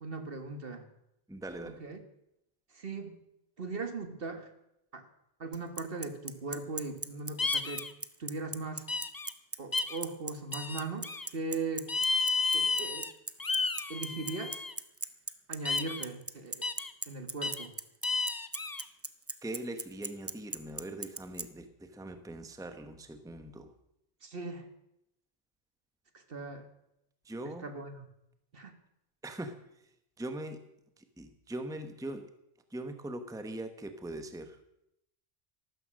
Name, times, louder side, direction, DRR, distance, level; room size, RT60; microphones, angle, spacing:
voice 1, 0.0-0.9 1.7-2.0 2.7-3.2 3.6-4.5 4.9-5.0 5.4-7.9 8.2-8.9 9.6-11.9 12.5-13.1 13.9-14.6 15.5-16.6 17.1-17.7 24.2-24.7 26.1-26.7 27.4-28.1 28.5-28.7, right 3 dB, 60° right, 7 dB, 1.8 m, -39 dB
voice 2, 1.3-1.8 19.4-23.7 27.3-27.7 29.2-29.5 30.2-30.6 31.2-32.3 32.7-34.6, right 1 dB, 5° right, 8 dB, 1.0 m, -41 dB
Bicycle, 5.5-21.4, right 3 dB, 20° right, 0.4 m, -37 dB
sound 1, 7.4-7.9 8.9-9.3 9.7-10.0 10.5-11.3 11.9-13.1 13.4-14.7 15.6-16.0 16.6-16.9 17.4-17.7 18.0-18.8, left 3 dB, 25° left, 0.7 m, -32 dB
13.5 x 12.5 x 6.3 m, 0.82 s
omnidirectional pair, 1.1 m